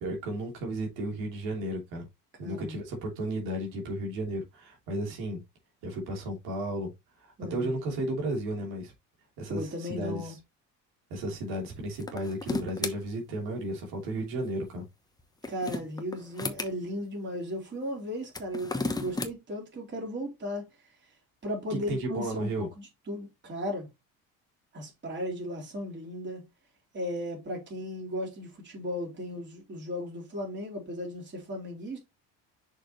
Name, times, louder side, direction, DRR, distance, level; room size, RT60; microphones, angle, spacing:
voice 1, 0.0-2.0 2.4-5.4 5.8-6.9 7.2-8.9 9.4-10.4 11.1-14.8 21.7-22.7, right 1 dB, 80° right, 3.0 m, -33 dB
voice 2, 2.4-2.8 7.4-7.7 9.5-10.4 15.5-20.7 21.4-23.9 24.7-26.5 26.9-32.0, equal, 30° right, 3.7 m, -36 dB
sound 1, 11.9-12.9 15.2-16.7 18.2-19.3, left 2 dB, 10° left, 1.0 m, -33 dB
6.5 x 5.0 x 3.0 m
cardioid pair, 120°, 36 cm